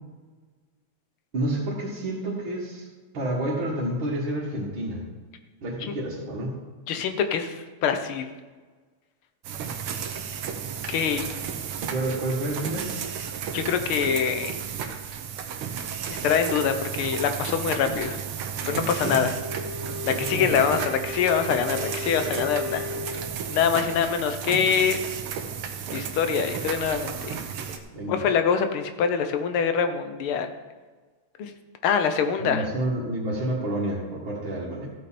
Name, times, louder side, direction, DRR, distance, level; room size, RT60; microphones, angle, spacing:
voice 1, 1.3-2.9 3.1-5.0 5.6-6.6 11.9-12.9 18.8-19.2 20.1-20.8 27.9-28.3 32.4-34.9, right 1 dB, 65° right, -8 dB, 2.8 m, -29 dB
voice 2, 6.9-8.3 10.9-11.3 13.5-14.6 16.2-18.2 18.7-19.3 20.0-22.9 23.5-25.0 25.9-27.4 28.1-30.5 31.4-31.5 31.8-32.6, left 7 dB, 80° left, 8 dB, 1.8 m, -24 dB
sound 1, 9.4-27.8, right 7 dB, 85° right, 1.8 m, -33 dB
Wind instrument woodwind instrument, 19.2-23.6, left 2 dB, 35° right, 1.9 m, -36 dB
14.5 x 8.5 x 4.3 m, 1.4 s
omnidirectional pair, 2.4 m